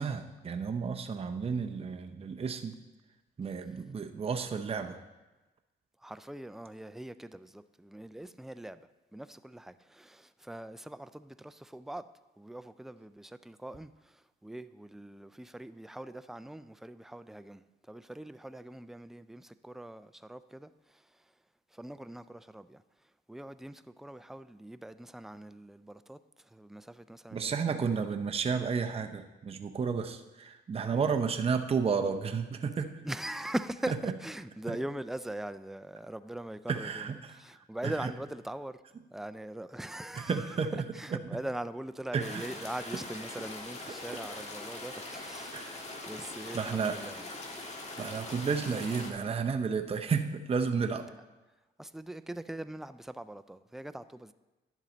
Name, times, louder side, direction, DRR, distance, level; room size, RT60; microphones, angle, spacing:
voice 1, 0.0-2.8 3.4-5.0 27.3-33.0 33.9-34.1 36.7-37.4 37.8-38.1 40.1-41.4 42.1-42.5 44.1-44.2 45.5-45.9 46.5-47.2 48.0-51.1, right 5 dB, 30° right, 0.7 m, -32 dB
voice 2, 6.0-8.8 9.1-12.0 12.4-21.1 21.7-22.8 23.3-28.0 30.8-31.2 33.0-38.8 39.1-45.5 46.0-47.3 51.8-54.3, right 1 dB, ahead, 0.3 m, -42 dB
sound 1, 42.2-49.1, left 2 dB, 35° left, 1.5 m, -42 dB
10.5 x 7.4 x 3.9 m
cardioid pair, 90°, 20 cm